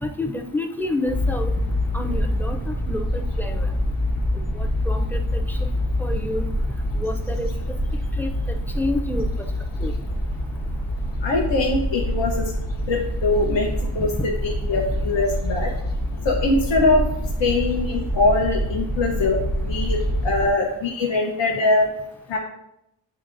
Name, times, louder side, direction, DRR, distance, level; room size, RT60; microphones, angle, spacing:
voice 1, 0.0-1.5 1.9-3.7 4.3-5.7 6.0-6.5 7.0-7.8 8.2-9.3 9.8-9.9 14.0-14.3, left 1 dB, 5° left, 3 dB, 0.4 m, -29 dB
sound 1, 1.1-20.5, equal, 50° left, 1.2 m, -26 dB
voice 2, 11.2-12.4 12.9-13.7 13.9-14.1 14.4-15.7 16.2-17.0 17.4-21.9 22.3-22.4, left 2 dB, 80° left, 0 dB, 0.9 m, -22 dB
9.4 x 3.9 x 2.6 m, 0.82 s
wide cardioid pair, 140°, 43 cm